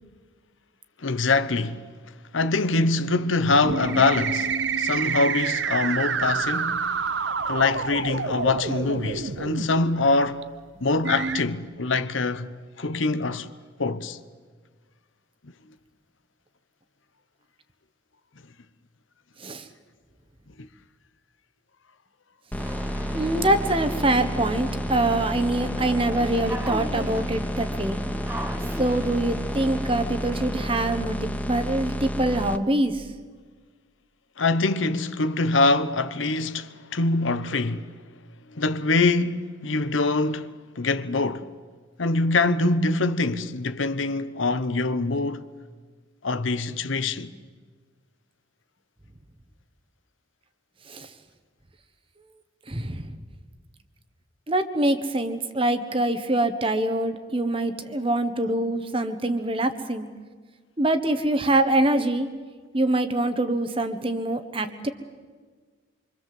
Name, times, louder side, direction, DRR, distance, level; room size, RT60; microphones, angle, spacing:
voice 1, 1.0-1.9 2.3-10.5 10.8-13.5 13.8-14.2 20.6-20.7 34.4-37.9 38.5-41.5 42.0-45.5 46.2-47.3, left 3 dB, 75° left, 1.0 m, -24 dB
sound 1, 3.6-9.7 10.4-10.5 11.0-11.4, right 5 dB, 60° right, 0.8 m, -28 dB
sound 2, 22.5-32.6, equal, 10° left, 0.7 m, -31 dB
sound 3, 22.6-30.7, right 1 dB, 10° right, 1.1 m, -37 dB
voice 2, 23.1-28.0 28.8-33.1 50.9-51.1 52.7-53.2 54.5-60.1 60.8-62.3 62.7-64.9, right 1 dB, 25° right, 1.4 m, -24 dB
26.0 x 25.0 x 7.8 m
head